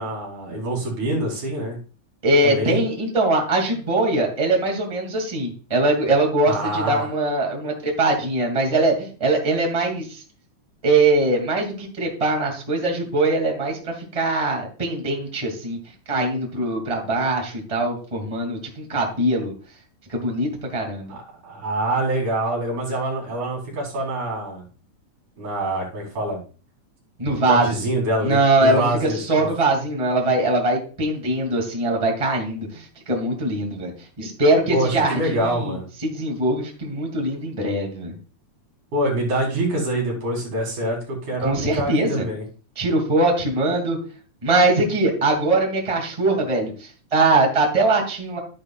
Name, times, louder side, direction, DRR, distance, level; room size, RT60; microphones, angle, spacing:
voice 1, 0.0-1.8 2.4-2.8 6.5-7.1 21.1-24.6 25.4-26.4 27.3-29.5 34.7-35.9 38.9-42.4, right 1 dB, 80° right, -1 dB, 4.7 m, -25 dB
voice 2, 2.2-10.2 10.8-15.8 16.1-19.5 20.1-21.1 27.2-27.8 28.2-33.9 34.2-35.7 36.0-38.1 41.4-42.3 42.8-44.0 44.4-48.4, right 2 dB, 10° right, 1 dB, 2.1 m, -22 dB
12.0 x 10.5 x 2.4 m, 0.39 s
omnidirectional pair, 3.5 m